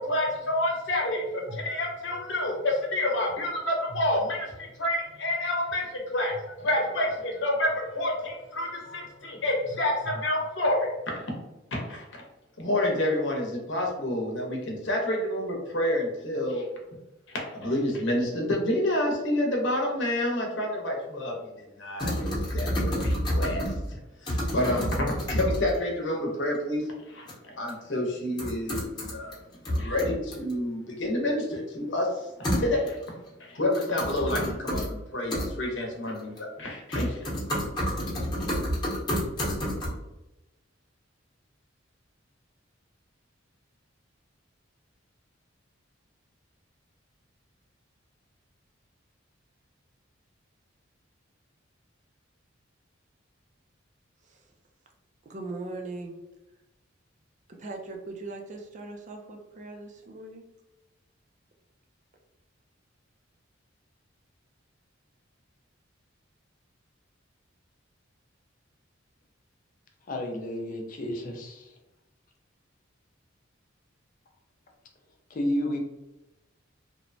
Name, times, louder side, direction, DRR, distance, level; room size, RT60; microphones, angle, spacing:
voice 1, 0.0-11.3 11.7-12.2 12.6-16.7 17.3-22.3 22.5-27.3 27.6-29.4 29.7-32.3 32.6-33.0 33.4-37.3, left 1 dB, 65° left, 0 dB, 0.8 m, -29 dB
sound 1, 22.0-23.9 24.3-25.7 27.3-27.4 27.7-27.8 28.4-29.3 29.6-30.5 32.4-33.1 33.7-34.9 35.3-35.5 36.2-36.6 36.9-39.9, equal, 20° left, 0.9 m, -29 dB
voice 2, 55.2-56.2 57.6-60.4, right 2 dB, 40° right, 2 dB, 0.4 m, -39 dB
voice 3, 70.1-71.8 75.3-75.8, left 1 dB, 45° left, 2 dB, 0.5 m, -31 dB
2.9 x 2.1 x 2.6 m, 0.98 s
head